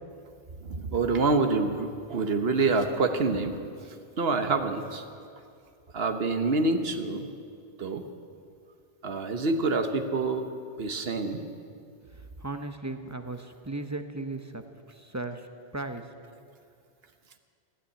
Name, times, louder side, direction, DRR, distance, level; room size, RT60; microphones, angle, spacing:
voice 1, 0.6-3.6 4.2-5.0 5.9-7.3 7.8-8.0 9.0-10.5 10.8-11.4, right 3 dB, 65° right, 7 dB, 1.2 m, -26 dB
voice 2, 12.0-14.6 14.9-15.5 15.7-16.0, right 2 dB, 20° right, 7 dB, 0.7 m, -36 dB
15.5 x 9.9 x 8.8 m, 2.3 s
omnidirectional pair, 1.1 m